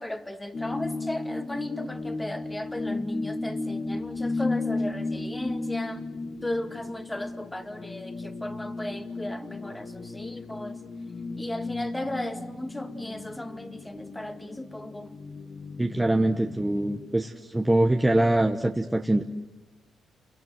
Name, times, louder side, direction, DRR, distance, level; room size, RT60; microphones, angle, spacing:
voice 1, 0.0-6.1 6.4-10.8 11.4-15.2, left 1 dB, 10° left, 1.9 m, -36 dB
sound 1, 0.5-17.2, left 3 dB, 35° left, 1.6 m, -34 dB
voice 2, 15.8-19.2, right 1 dB, 10° right, 1.2 m, -23 dB
29.5 x 23.5 x 7.8 m
cardioid pair, 90°, 0 cm